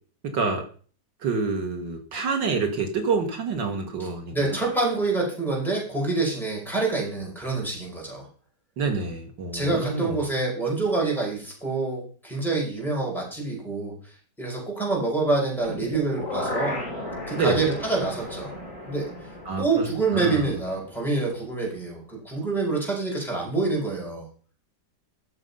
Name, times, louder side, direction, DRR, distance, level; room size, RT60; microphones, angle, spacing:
voice 1, 0.2-0.7 1.2-4.4 8.8-10.2 17.3-17.7 19.5-20.5, right 4 dB, 75° right, 5 dB, 2.3 m, -27 dB
voice 2, 4.0-8.3 9.5-13.9 14.4-16.8 17.3-18.5 18.9-19.1 19.6-24.3, right 3 dB, ahead, -3 dB, 5.2 m, -26 dB
sound 1, 15.6-21.6 21.9-22.0, left 1 dB, 45° left, 4.5 m, -35 dB
13.0 x 6.7 x 5.5 m, 0.42 s
omnidirectional pair, 2.0 m